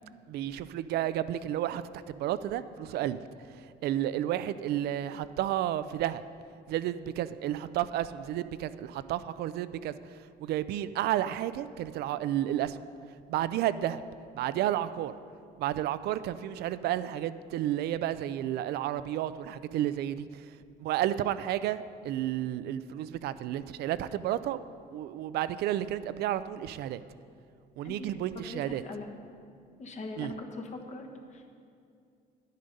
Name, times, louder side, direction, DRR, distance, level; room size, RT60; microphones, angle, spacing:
voice 1, 0.3-3.2 3.5-6.2 6.7-12.8 13.3-14.0 14.4-15.1 15.6-24.6 24.9-27.0 27.8-28.8 30.2-30.3, right 12 dB, 70° right, 14 dB, 0.5 m, -32 dB
voice 2, 28.5-29.1 29.8-31.5, left 2 dB, 45° left, 3 dB, 1.4 m, -41 dB
10.5 x 10.5 x 5.3 m, 2.4 s
cardioid pair, 110°, 17 cm